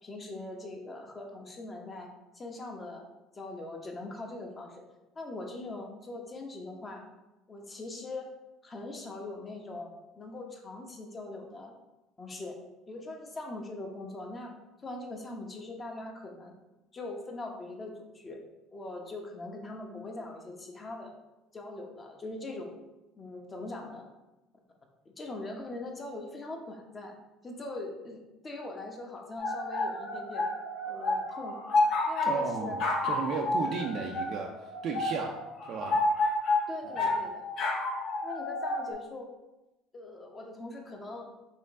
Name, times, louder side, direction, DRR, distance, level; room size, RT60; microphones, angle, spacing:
voice 1, 0.0-3.0 3.3-4.8 5.1-7.0 7.5-8.3 8.6-11.7 12.2-12.6 12.9-14.5 14.8-16.5 16.9-18.4 18.7-21.1 21.5-22.8 23.2-24.1 25.2-27.2 27.4-30.5 30.8-31.6 32.1-32.8 36.7-37.5 38.2-39.3 39.9-41.3, left 2 dB, 30° left, 1 dB, 1.0 m, -41 dB
sound 1, 29.4-38.9, left 2 dB, 60° left, 0.8 m, -30 dB
voice 2, 32.3-35.4 35.6-36.0 36.8-37.0, right 5 dB, 55° right, 1 dB, 0.5 m, -35 dB
4.3 x 3.1 x 3.6 m, 1.0 s
hypercardioid pair, 75°, 0 cm